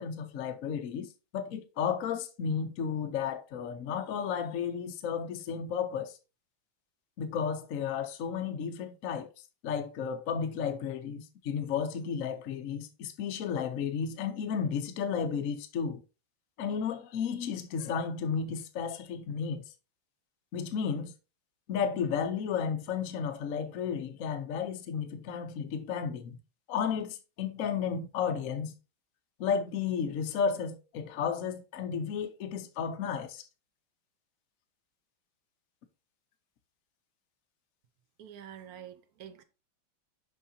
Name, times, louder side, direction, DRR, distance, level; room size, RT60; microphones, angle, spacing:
voice 1, 0.0-6.2 7.2-9.3 9.6-16.0 16.6-19.6 20.5-21.1 21.7-26.4 26.7-28.7 29.4-33.4, left 7 dB, 70° left, 0.8 m, -33 dB
voice 2, 38.2-39.4, right 9 dB, 60° right, 1.0 m, -47 dB
6.4 x 5.5 x 2.8 m
omnidirectional pair, 2.3 m